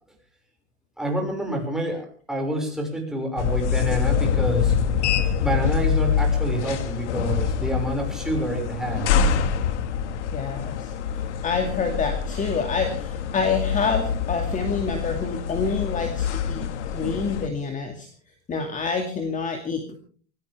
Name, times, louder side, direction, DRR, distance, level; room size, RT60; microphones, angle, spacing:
voice 1, 1.0-4.8 5.4-9.3, right 1 dB, ahead, 1 dB, 5.9 m, -28 dB
sound 1, 3.4-17.5, left 7 dB, 85° left, 2.0 m, -25 dB
voice 2, 10.3-10.9 11.4-18.1 18.5-19.9, left 5 dB, 20° left, 4 dB, 2.4 m, -27 dB
23.5 x 17.0 x 3.6 m, 0.43 s
supercardioid pair, 130°, 34 cm